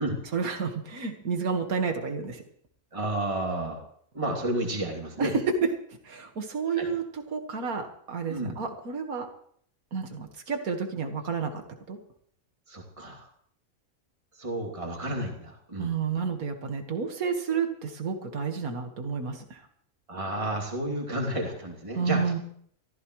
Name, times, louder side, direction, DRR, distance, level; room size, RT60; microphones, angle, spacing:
voice 1, 0.3-2.4 5.2-5.7 6.0-9.3 9.9-11.6 11.9-12.0 15.8-19.6 21.9-22.4, right 5 dB, 80° right, 5 dB, 2.1 m, -30 dB
voice 2, 2.9-3.8 4.1-5.3 6.7-6.9 8.3-8.6 12.7-13.3 14.4-15.9 20.1-22.2, right 1 dB, 20° right, 0 dB, 2.8 m, -31 dB
23.5 x 15.0 x 3.2 m, 0.63 s
omnidirectional pair, 1.5 m